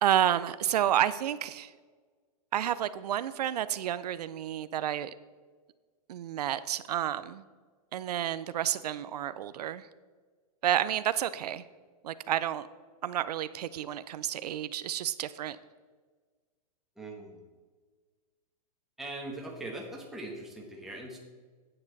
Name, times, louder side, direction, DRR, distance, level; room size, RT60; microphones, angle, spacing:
voice 1, 0.0-1.7 2.5-5.1 6.1-7.4 7.9-9.9 10.6-11.6 12.0-12.7 13.0-15.6, right 11 dB, 80° right, 14 dB, 0.5 m, -30 dB
voice 2, 17.0-17.4 19.0-21.2, right 2 dB, ahead, -1 dB, 1.2 m, -41 dB
9.8 x 8.6 x 4.0 m, 1.5 s
supercardioid pair, 165°, 20 cm